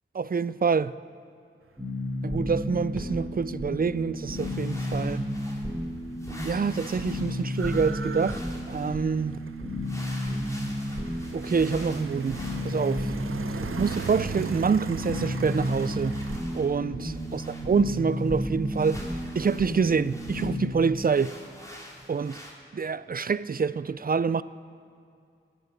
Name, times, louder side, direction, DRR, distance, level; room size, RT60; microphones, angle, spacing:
voice 1, 0.1-0.9 2.2-5.2 6.4-8.4 8.7-9.4 11.3-13.1 13.8-16.2 16.5-19.0 19.4-21.4 22.1-22.4 22.7-24.4, right 5 dB, 45° right, 0.4 m, -26 dB
sound 1, 1.8-20.7, left 1 dB, 5° right, 3.2 m, -32 dB
sound 2, 4.2-5.8 6.2-8.9 9.8-13.4 13.7-16.7 17.0-20.5 21.0-22.5, equal, 15° left, 3.2 m, -47 dB
sound 3, 5.7-5.8 6.0-16.4, right 6 dB, 90° right, 0.6 m, -39 dB
20.0 x 7.1 x 8.8 m
wide cardioid pair, 55°, 21 cm